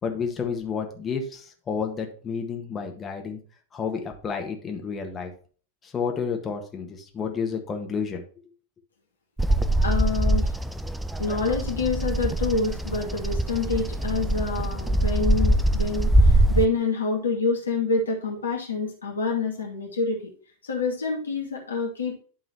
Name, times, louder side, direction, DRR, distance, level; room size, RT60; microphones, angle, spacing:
voice 1, 0.0-3.4 3.7-5.3 5.8-8.2, left 6 dB, 20° left, 3 dB, 1.6 m, -30 dB
Bird vocalization bird call bird song, 9.4-16.7, right 1 dB, 5° right, 0.5 m, -23 dB
voice 2, 9.8-10.5 11.2-20.3 20.6-22.2, left 3 dB, 75° left, 0 dB, 2.2 m, -27 dB
11.0 x 3.8 x 4.4 m, 0.41 s
figure-of-eight pair, 90°, 0 cm